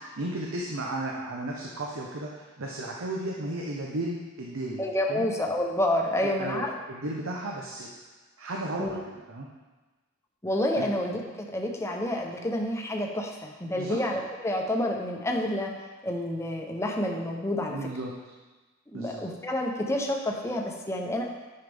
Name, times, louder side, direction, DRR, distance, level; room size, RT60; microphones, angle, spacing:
voice 1, 0.2-4.8 5.1-5.3 6.2-7.9 8.4-9.5 10.8-10.9 13.8-14.0 17.7-18.1 18.9-19.3, right 1 dB, 75° right, -2 dB, 0.8 m, -34 dB
voice 2, 4.8-6.7 8.8-9.0 10.4-11.2 11.5-15.7 16.0-17.9 18.9-21.2, left 1 dB, 15° left, 1 dB, 0.8 m, -29 dB
9.5 x 5.6 x 3.5 m, 1.2 s
head